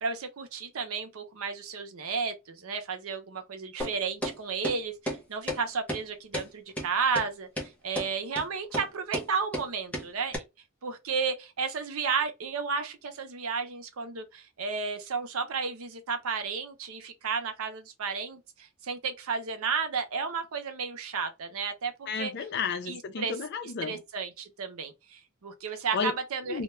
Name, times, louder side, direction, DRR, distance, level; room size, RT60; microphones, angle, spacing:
voice 1, 0.0-10.4 10.8-22.3 22.9-23.3 23.8-26.6, right 5 dB, 90° right, 0.6 m, -33 dB
sound 1, 3.8-3.9 4.2-4.3 4.6-4.8 5.1-5.2 5.5-5.6 5.9-6.0 6.3-6.5 6.8-6.9 7.1-7.2 7.6-7.7 7.9-8.1 8.4-8.5 8.7-8.9 9.1-9.3 9.5-9.7 9.9-10.1 10.3-10.4, equal, 5° left, 0.6 m, -32 dB
voice 2, 22.1-24.0 25.9-26.1 26.5-26.6, left 5 dB, 55° left, 0.5 m, -32 dB
2.2 x 2.2 x 2.9 m
head